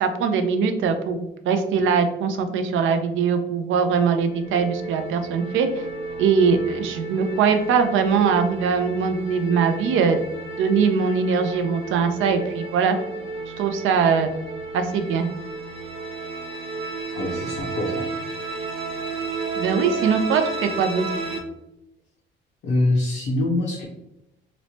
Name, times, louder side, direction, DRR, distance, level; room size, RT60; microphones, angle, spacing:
voice 1, 0.0-5.7 6.2-10.2 10.6-13.0 13.6-14.3 14.7-15.3 19.6-21.0, right 6 dB, 80° right, 7 dB, 0.4 m, -21 dB
sound 1, 4.0-21.4, right 3 dB, 30° right, 0.6 m, -33 dB
voice 2, 17.1-18.1 22.6-23.8, left 2 dB, 60° left, -2 dB, 0.6 m, -24 dB
3.0 x 2.1 x 2.7 m, 0.88 s
cardioid pair, 90°, 20 cm